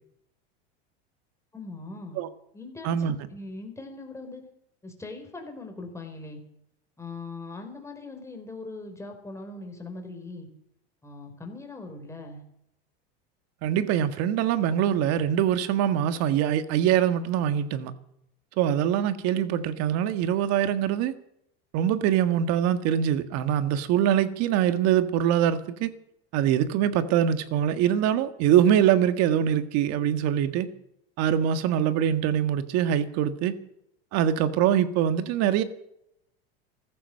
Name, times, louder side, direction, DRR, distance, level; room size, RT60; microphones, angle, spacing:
voice 1, 1.5-2.2 2.5-4.4 4.8-6.4 7.0-10.5 11.0-12.4, left 3 dB, 10° left, 3 dB, 4.3 m, -40 dB
voice 2, 2.8-3.1 13.6-17.9 18.6-21.1 21.7-25.9 26.3-30.7 31.2-33.5 34.1-35.6, right 10 dB, 55° right, 11 dB, 1.7 m, -23 dB
15.5 x 14.0 x 6.5 m, 0.77 s
supercardioid pair, 125°, 31 cm